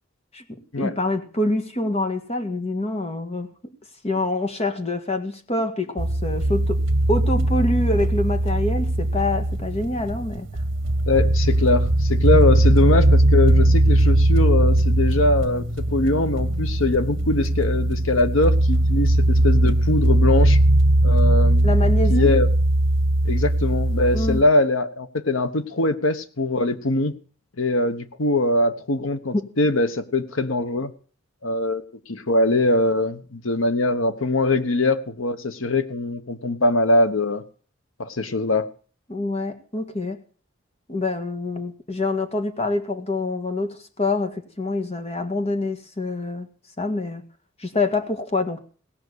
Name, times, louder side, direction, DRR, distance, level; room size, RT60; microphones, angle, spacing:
voice 1, 0.8-3.5 4.0-6.8 7.1-10.5 21.6-22.3 24.1-24.4 29.3-29.5 39.1-40.2 40.9-46.5 46.8-47.2 47.6-48.6, left 2 dB, 30° left, 7 dB, 1.8 m, -26 dB
sound 1, 6.0-24.4, right 1 dB, 65° right, 1.3 m, -19 dB
voice 2, 11.1-20.6 21.0-21.7 22.1-22.5 23.2-27.1 27.6-30.9 31.4-37.4 38.0-38.7, left 2 dB, 75° left, 11 dB, 1.2 m, -22 dB
17.5 x 6.0 x 8.1 m, 0.42 s
head